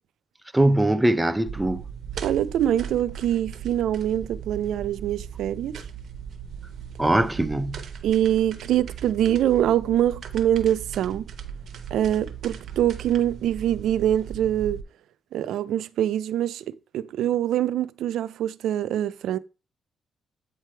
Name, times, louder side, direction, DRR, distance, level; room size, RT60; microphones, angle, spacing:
voice 1, 0.5-1.8 7.0-7.9, right 1 dB, 10° right, 0.5 m, -21 dB
sound 1, 1.5-14.8, right 7 dB, 65° right, 0.8 m, -38 dB
voice 2, 2.2-5.8 8.0-11.2 11.9-14.8 15.3-19.4, right 11 dB, 85° right, 0.3 m, -24 dB
8.1 x 3.3 x 4.4 m
cardioid pair, 85°, 0 cm